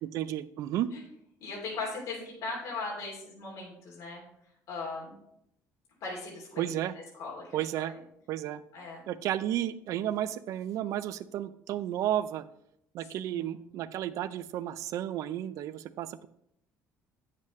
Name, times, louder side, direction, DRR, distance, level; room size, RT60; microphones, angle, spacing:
voice 1, 0.0-0.9 6.6-7.0 7.5-7.9 8.3-8.6 9.1-12.4 12.9-16.3, right 12 dB, 55° right, 15 dB, 0.4 m, -32 dB
voice 2, 1.4-4.2 4.7-5.1 6.0-6.7 7.2-7.9 8.7-9.0 13.2-13.7, left 3 dB, 60° left, -4 dB, 2.9 m, -39 dB
9.0 x 7.5 x 3.1 m, 0.74 s
cardioid pair, 165°, 6 cm